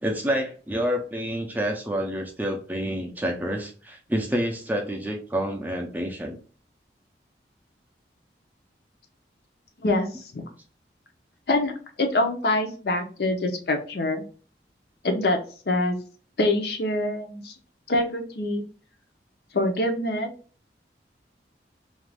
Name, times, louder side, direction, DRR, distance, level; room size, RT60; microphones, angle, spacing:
voice 1, 0.0-6.4, equal, 10° right, 1 dB, 0.4 m, -28 dB
voice 2, 12.0-14.2 15.0-15.4 15.7-16.0 16.4-17.5 17.9-18.6 19.5-20.3, left 2 dB, 60° left, 5 dB, 0.6 m, -24 dB
2.5 x 2.3 x 3.2 m, 0.39 s
head